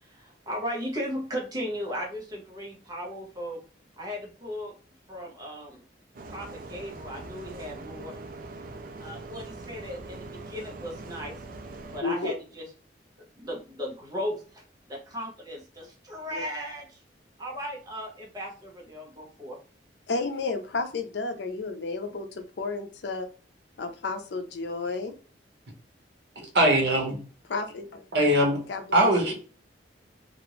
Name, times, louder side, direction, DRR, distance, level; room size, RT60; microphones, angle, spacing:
voice 1, 0.0-3.6 4.0-4.7 5.1-5.8 6.3-8.2 9.0-11.4 11.8-12.7 13.4-17.0 17.4-19.6, equal, 20° right, 0.9 m, -36 dB
Bus, 6.1-12.0, right 3 dB, 50° right, 0.4 m, -42 dB
voice 2, 12.0-12.3 16.3-16.4 20.1-23.3 23.8-25.1 27.5-28.0 28.7-29.3, left 3 dB, 70° left, 0.5 m, -32 dB
voice 3, 26.4-27.2 28.1-28.6 28.9-29.3, right 1 dB, 70° right, 1.0 m, -21 dB
2.9 x 2.5 x 3.0 m
head